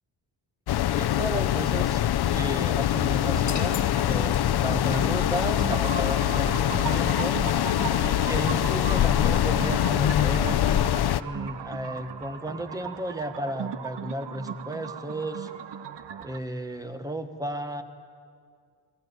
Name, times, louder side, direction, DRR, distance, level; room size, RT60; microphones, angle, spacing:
sound 1, 0.7-11.2, left 12 dB, 60° left, 0.7 m, -24 dB
voice 1, 0.9-2.0 2.3-7.4 7.9-10.6 11.2-15.5 16.2-17.8, equal, 10° right, 8 dB, 1.3 m, -33 dB
sound 2, 2.8-16.4, right 8 dB, 65° right, 1.2 m, -38 dB
sound 3, 3.5-4.9, left 7 dB, 40° left, 1.9 m, -40 dB
29.5 x 20.5 x 9.6 m, 2.2 s
wide cardioid pair, 175°, 45 cm